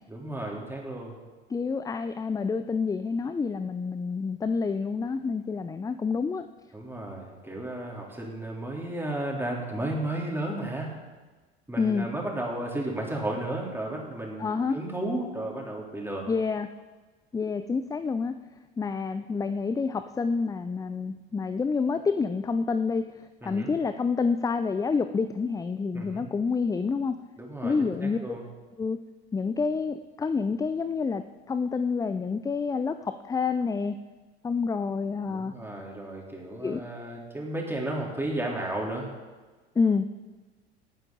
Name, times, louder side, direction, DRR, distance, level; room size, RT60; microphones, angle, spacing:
voice 1, 0.1-1.2 6.7-10.9 11.7-16.3 23.4-23.7 25.9-26.3 27.4-28.4 35.3-39.1, right 1 dB, 5° right, -2 dB, 3.5 m, -33 dB
voice 2, 1.5-6.5 11.8-12.1 14.4-14.8 16.3-16.7 17.3-18.3 18.8-27.2 27.6-28.2 28.8-29.0 29.3-34.0 34.4-35.5 36.6-36.8 39.8-40.1, left 5 dB, 10° left, 10 dB, 0.4 m, -28 dB
19.0 x 9.0 x 4.0 m, 1.3 s
hypercardioid pair, 75°, 32 cm